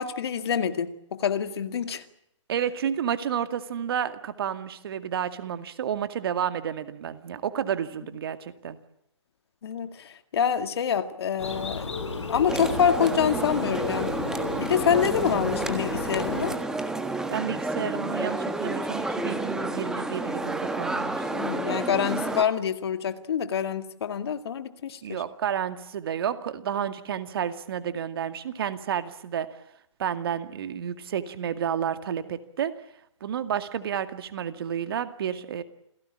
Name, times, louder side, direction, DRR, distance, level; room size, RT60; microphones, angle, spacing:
voice 1, 0.0-2.0 9.6-16.6 21.3-25.2, left 8 dB, 55° left, 9 dB, 2.2 m, -27 dB
voice 2, 2.5-8.8 17.3-21.3 25.0-29.5 30.0-32.7 33.2-35.6, right 9 dB, 50° right, 9 dB, 2.2 m, -31 dB
Bird, 11.4-16.6, left 3 dB, 70° left, 7.0 m, -33 dB
sound 1, 12.5-22.4, right 2 dB, 5° right, 1.5 m, -30 dB
28.5 x 17.0 x 8.8 m, 0.78 s
figure-of-eight pair, 135°, 16 cm